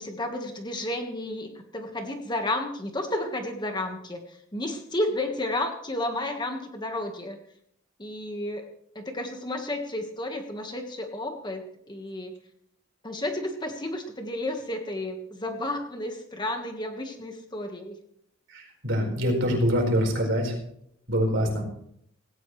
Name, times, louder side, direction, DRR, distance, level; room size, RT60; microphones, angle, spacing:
voice 1, 0.0-7.4 8.0-8.7 8.9-12.3 13.0-18.0, left 1 dB, 20° left, 4 dB, 1.6 m, -32 dB
voice 2, 18.8-20.5 21.1-21.6, equal, 60° right, 0 dB, 4.8 m, -24 dB
18.0 x 17.5 x 3.3 m, 0.70 s
head